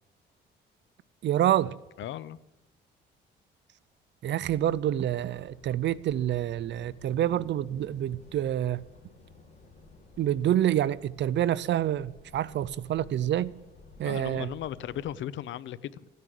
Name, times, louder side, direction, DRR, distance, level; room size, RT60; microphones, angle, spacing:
voice 1, 1.2-1.7 4.2-8.8 10.2-13.5 14.0-14.5, right 11 dB, 65° right, 0.6 m, -27 dB
voice 2, 2.0-2.4 14.0-16.1, left 11 dB, 75° left, 0.7 m, -36 dB
sound 1, 4.4-15.2, left 3 dB, 35° left, 4.8 m, -54 dB
16.5 x 9.6 x 7.7 m
cardioid pair, 90°, 20 cm